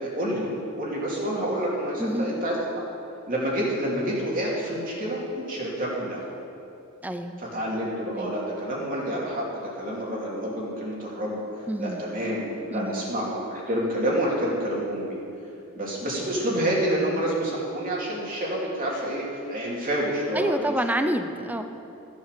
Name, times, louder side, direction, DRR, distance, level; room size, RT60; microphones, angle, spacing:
voice 1, 0.0-2.8 3.3-6.2 7.4-11.4 11.8-15.2 15.7-20.7, right 1 dB, 40° right, -4 dB, 2.9 m, -28 dB
voice 2, 2.0-2.3 7.0-7.4 8.0-8.4 11.7-12.0 12.7-13.0 17.0-17.3 20.3-21.6, right 1 dB, 10° right, 7 dB, 0.6 m, -28 dB
14.5 x 7.4 x 6.7 m, 2.7 s
head